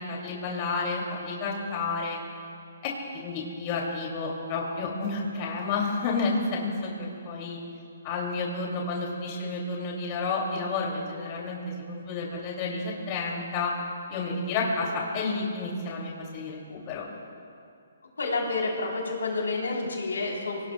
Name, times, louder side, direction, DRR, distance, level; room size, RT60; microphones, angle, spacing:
voice 1, 0.0-2.2 2.8-7.6 8.0-13.7 14.1-17.1, left 3 dB, 35° left, -2 dB, 2.8 m, -31 dB
voice 2, 18.2-20.7, left 3 dB, 85° left, -1 dB, 4.0 m, -29 dB
25.0 x 18.5 x 2.4 m, 2.4 s
hypercardioid pair, 150°, 0 cm